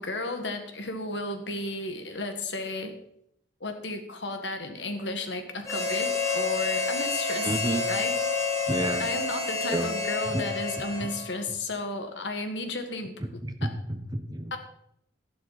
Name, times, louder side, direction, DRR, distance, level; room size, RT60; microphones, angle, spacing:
voice 1, 0.0-2.9 3.6-7.5 7.9-8.1 9.0-13.2 13.6-13.7 14.5-14.6, left 2 dB, 80° left, 6 dB, 1.8 m, -33 dB
Harmonica, 5.6-11.4, left 4 dB, 20° left, 2.0 m, -29 dB
voice 2, 7.4-7.9 8.7-9.1 9.7-9.9 10.3-10.4 11.0-11.1 13.4-14.5, right 1 dB, 20° right, 7 dB, 1.1 m, -30 dB
12.5 x 11.0 x 4.2 m, 0.74 s
head